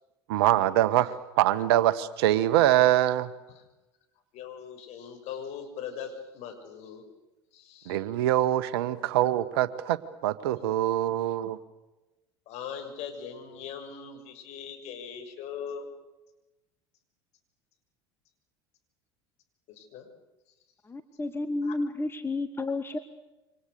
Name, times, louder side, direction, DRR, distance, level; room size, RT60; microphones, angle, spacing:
voice 1, 0.3-3.3 7.9-10.0 10.2-11.6, right 13 dB, 65° right, 14 dB, 1.5 m, -24 dB
voice 2, 4.3-7.0 7.5-8.0 12.5-15.9 19.7-20.1, left 7 dB, 50° left, 5 dB, 6.6 m, -40 dB
voice 3, 20.8-23.0, left 2 dB, 15° left, 9 dB, 1.6 m, -31 dB
28.0 x 25.5 x 6.8 m, 1.0 s
hypercardioid pair, 75°, 14 cm